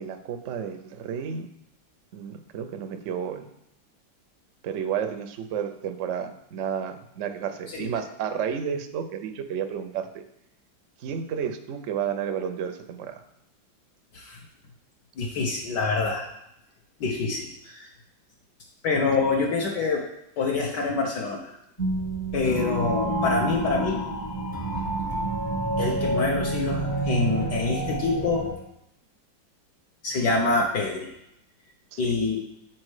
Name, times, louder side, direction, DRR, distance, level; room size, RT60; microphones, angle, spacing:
voice 1, 0.0-1.5 2.1-3.5 4.6-10.2 11.0-13.2 22.4-22.8 31.9-32.1, right 8 dB, 70° right, 8 dB, 0.7 m, -32 dB
voice 2, 15.2-16.3 17.0-17.9 18.8-20.0 20.4-21.5 22.3-24.0 25.8-28.5 30.0-31.1 32.0-32.4, left 3 dB, 65° left, -1 dB, 1.5 m, -26 dB
sound 1, 21.8-28.5, right 2 dB, 25° left, 0.4 m, -28 dB
7.4 x 4.5 x 4.8 m, 0.79 s
omnidirectional pair, 2.1 m